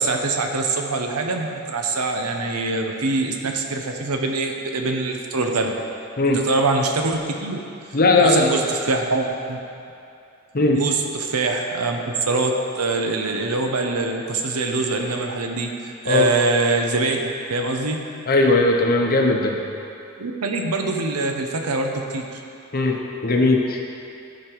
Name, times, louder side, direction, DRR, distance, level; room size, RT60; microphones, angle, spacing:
voice 1, 0.0-5.7 6.3-7.6 8.2-9.6 10.8-18.0 20.2-22.2, right 3 dB, 90° right, 3 dB, 0.9 m, -24 dB
voice 2, 7.9-8.5 10.5-10.8 16.1-16.2 18.3-19.6 22.7-23.0 23.2-23.8, left 2 dB, 40° left, 1 dB, 0.9 m, -18 dB
12.5 x 5.1 x 4.6 m, 2.6 s
head